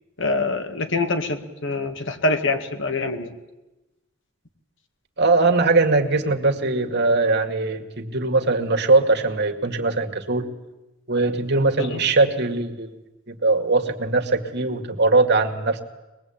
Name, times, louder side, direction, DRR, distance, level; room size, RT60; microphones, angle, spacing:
voice 1, 0.2-3.3 11.8-12.0, left 2 dB, 65° left, 6 dB, 2.2 m, -25 dB
voice 2, 5.2-10.5 11.1-12.9 13.3-15.8, right 3 dB, 55° right, 5 dB, 2.2 m, -21 dB
24.0 x 21.0 x 8.9 m, 1.0 s
head